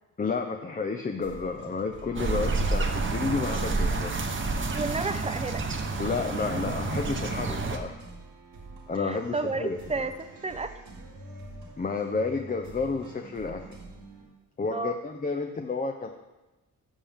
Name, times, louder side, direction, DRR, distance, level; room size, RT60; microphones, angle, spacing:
voice 1, 0.2-4.1 6.0-8.0 8.9-10.1 11.8-13.6 14.6-16.1, left 4 dB, 25° left, 4 dB, 0.7 m, -31 dB
sound 1, 1.1-14.2, right 2 dB, 90° right, 2.2 m, -46 dB
sound 2, 2.2-7.8, right 3 dB, 35° right, 1.1 m, -29 dB
voice 2, 4.7-5.6 9.0-10.1 10.4-10.7 14.7-14.9, right 3 dB, 20° right, 10 dB, 0.7 m, -31 dB
12.5 x 7.2 x 3.5 m, 1.1 s
cardioid pair, 80°, 33 cm